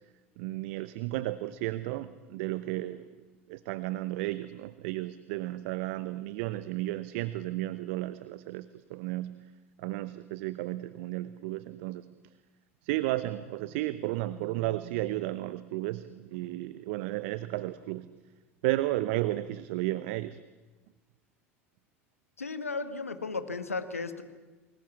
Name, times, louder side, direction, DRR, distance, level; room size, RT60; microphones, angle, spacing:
voice 1, 0.4-3.1 3.5-9.4 9.8-12.1 12.8-18.1 18.6-20.4, right 16 dB, 60° right, 15 dB, 0.9 m, -33 dB
voice 2, 22.4-24.2, left 4 dB, 90° left, 11 dB, 1.8 m, -35 dB
28.5 x 21.0 x 8.6 m, 1.2 s
figure-of-eight pair, 75°, 7 cm